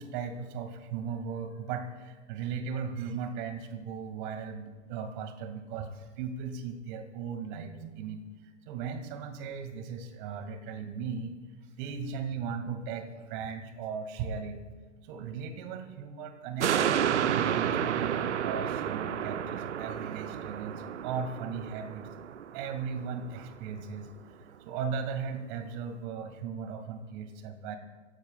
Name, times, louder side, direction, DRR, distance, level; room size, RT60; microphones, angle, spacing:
voice 1, 0.0-11.3 11.6-14.6 15.0-22.1 22.5-27.8, right 6 dB, 40° right, 7 dB, 2.1 m, -37 dB
sound 1, 16.6-23.3 23.7-23.8, right 9 dB, 70° right, 0.7 m, -31 dB
27.0 x 16.0 x 2.3 m, 1.4 s
figure-of-eight pair, 100°, 37 cm